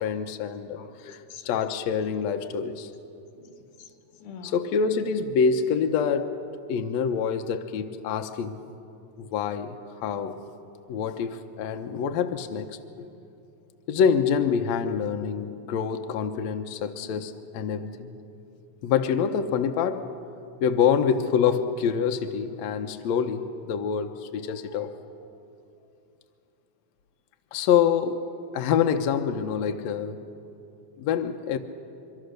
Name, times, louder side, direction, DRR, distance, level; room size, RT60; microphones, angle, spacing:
voice 1, 0.0-1.2 1.5-2.9 4.4-6.4 6.7-8.6 9.2-10.4 10.9-13.1 13.9-18.1 18.8-20.1 20.6-24.9 27.5-28.2 28.5-30.2 31.0-31.6, left 7 dB, 70° left, 5 dB, 2.0 m, -26 dB
voice 2, 0.7-1.5 3.3-4.6 17.0-17.2 17.9-18.0, left 6 dB, 90° left, 6 dB, 2.9 m, -47 dB
24.5 x 24.0 x 6.6 m, 2.8 s
omnidirectional pair, 3.4 m